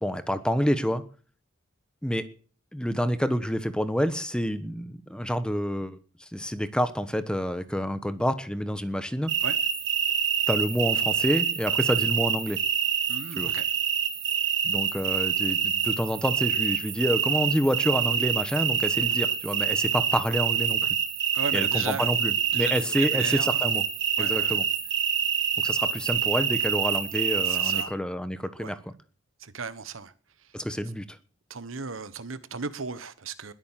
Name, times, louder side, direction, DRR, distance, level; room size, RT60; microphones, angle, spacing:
voice 1, 0.0-1.0 2.0-2.3 2.7-6.0 6.3-9.3 10.5-12.6 13.4-13.5 14.6-20.8 21.5-23.8 24.2-24.6 25.6-28.9 30.5-31.2, equal, 5° left, 1.1 m, -28 dB
sound 1, 9.3-27.8, right 8 dB, 60° right, 2.5 m, -26 dB
voice 2, 13.1-13.7 21.3-22.1 22.5-23.7 24.2-24.6 27.4-27.9 28.6-28.7 29.4-30.1 31.5-33.5, right 5 dB, 80° right, 1.3 m, -36 dB
20.5 x 8.9 x 7.5 m
head